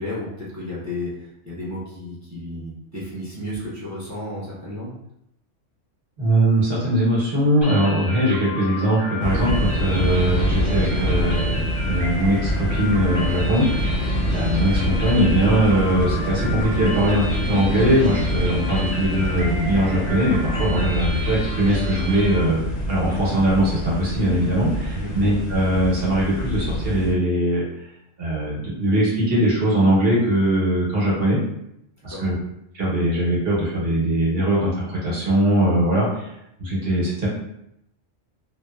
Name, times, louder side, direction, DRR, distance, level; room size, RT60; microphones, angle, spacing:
voice 1, 0.0-4.9 24.9-25.1 32.1-32.2, left 1 dB, 20° right, -8 dB, 0.5 m, -33 dB
voice 2, 6.2-22.6 22.9-27.6 28.2-31.4 32.0-32.3 32.7-36.3 36.6-37.3, right 1 dB, 55° right, -6 dB, 1.1 m, -21 dB
sound 1, 7.6-22.4, equal, 25° left, 0.8 m, -33 dB
sound 2, 9.2-27.1, equal, 60° left, 0.7 m, -26 dB
sound 3, 12.9-20.9, left 2 dB, 90° left, 1.0 m, -34 dB
2.8 x 2.1 x 2.2 m, 0.79 s
omnidirectional pair, 1.3 m